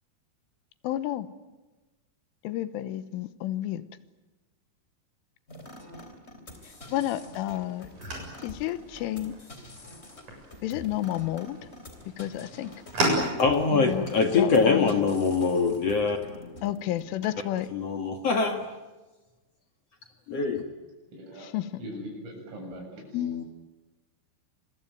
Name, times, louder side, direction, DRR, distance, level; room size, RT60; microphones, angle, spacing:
voice 1, 0.8-1.3 2.5-3.8 6.9-7.9 8.4-9.4 10.6-11.6 12.2-12.7 13.7-14.1 14.4-14.9 16.6-17.7 21.5-21.7, left 13 dB, 90° left, 13 dB, 3.6 m, -30 dB
sound 1, 5.5-17.6, left 1 dB, 15° left, 2.7 m, -46 dB
sound 2, 6.5-13.7, right 1 dB, 40° right, 8.6 m, -35 dB
voice 2, 13.2-16.2 17.7-18.6 20.3-20.6 23.1-23.4, left 4 dB, 65° left, 5 dB, 1.6 m, -24 dB
voice 3, 21.1-21.5 21.8-23.3, equal, 85° right, 1 dB, 10.0 m, -41 dB
27.5 x 22.5 x 9.3 m, 1.2 s
omnidirectional pair, 5.6 m